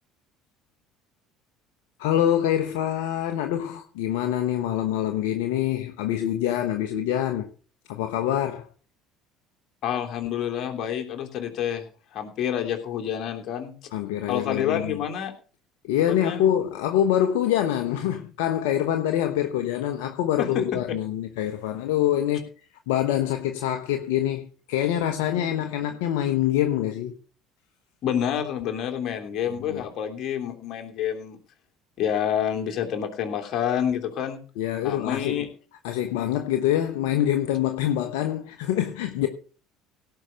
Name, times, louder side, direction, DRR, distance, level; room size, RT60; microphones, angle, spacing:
voice 1, 2.0-7.5 7.9-8.7 13.9-15.0 15.8-22.5 22.9-27.1 29.7-29.8 34.6-35.5 35.8-39.3, left 11 dB, 75° left, 1.2 m, -25 dB
voice 2, 9.8-11.9 12.1-13.7 14.3-15.3 16.0-16.4 20.4-20.6 25.4-25.7 28.0-31.4 32.0-34.4 34.8-35.5 39.2-39.3, left 9 dB, 55° left, 3.1 m, -28 dB
17.0 x 5.8 x 6.4 m
hypercardioid pair, 70°, 0 cm